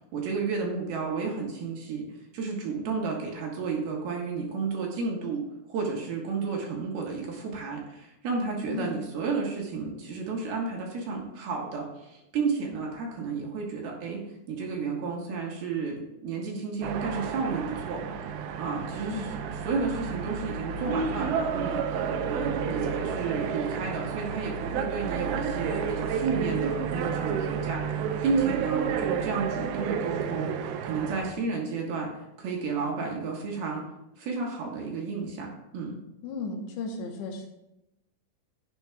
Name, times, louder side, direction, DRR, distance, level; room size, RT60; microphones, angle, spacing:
voice 1, 0.1-2.1 2.3-18.0 18.6-19.4 19.6-27.8 28.2-32.1 32.4-33.8 34.2-36.0, right 4 dB, 65° right, -1 dB, 3.0 m, -32 dB
sound 1, 16.8-31.3, right 6 dB, 80° right, 2.8 m, -31 dB
voice 2, 36.2-37.5, left 4 dB, 75° left, 2 dB, 3.0 m, -35 dB
13.0 x 8.9 x 2.3 m, 0.92 s
omnidirectional pair, 5.2 m